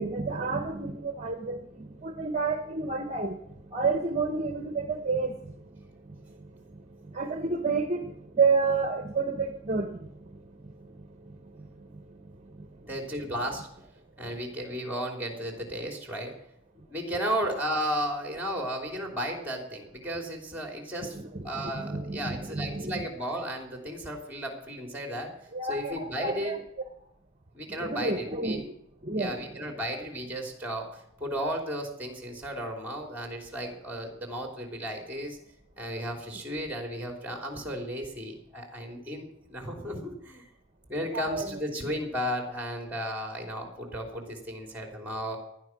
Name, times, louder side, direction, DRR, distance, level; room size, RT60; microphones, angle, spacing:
voice 1, 0.0-1.6 2.0-3.4 3.7-5.3 7.1-8.0 8.4-9.9 21.1-21.3 21.5-22.9 25.5-26.6 27.8-28.6 29.1-29.3 41.1-41.5, right 4 dB, 35° right, 7 dB, 1.0 m, -29 dB
voice 2, 12.8-13.7 14.2-16.3 16.9-21.2 21.4-25.3 25.6-26.6 27.5-28.7 29.1-35.4 35.8-40.5 40.9-45.4, equal, 10° right, 3 dB, 3.4 m, -34 dB
19.0 x 12.0 x 6.0 m, 0.79 s
head